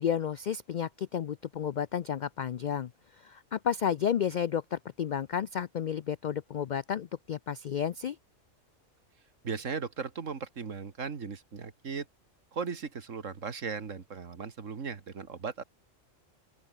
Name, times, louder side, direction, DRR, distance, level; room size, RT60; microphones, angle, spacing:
voice 1, 0.0-2.9 3.2-8.2, left 8 dB, 85° left, 0.4 m, -32 dB
voice 2, 9.4-12.1 12.5-15.6, right 5 dB, 75° right, 2.1 m, -37 dB
open air
omnidirectional pair, 1.3 m